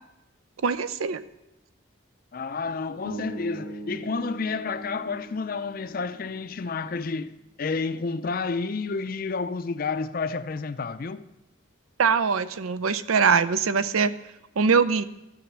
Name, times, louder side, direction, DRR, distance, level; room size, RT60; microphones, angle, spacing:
voice 1, 0.6-1.2 12.0-14.1 14.6-15.0, right 5 dB, 90° right, 0.5 m, -22 dB
voice 2, 2.3-11.3, left 4 dB, 45° left, 0.4 m, -30 dB
sound 1, 3.0-7.2, right 1 dB, 60° right, 1.2 m, -40 dB
14.5 x 6.4 x 5.9 m
head